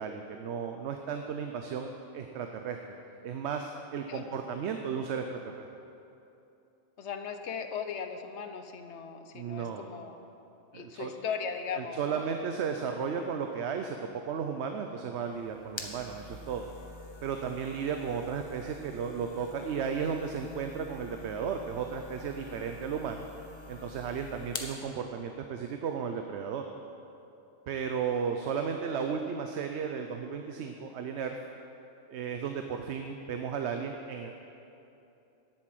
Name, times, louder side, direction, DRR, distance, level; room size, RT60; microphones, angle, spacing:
voice 1, 0.0-3.0 3.2-5.7 9.3-9.9 10.7-11.1 11.8-14.0 14.2-16.7 17.2-23.3 23.7-26.6 27.7-31.4 32.1-34.3, right 6 dB, 75° right, 5 dB, 0.9 m, -34 dB
voice 2, 7.0-10.2 10.7-12.2 28.5-28.7, left 6 dB, 75° left, 7 dB, 1.1 m, -38 dB
sound 1, 15.2-24.8, left 2 dB, 25° left, 1.0 m, -46 dB
10.5 x 8.0 x 7.7 m, 2.8 s
omnidirectional pair, 1.2 m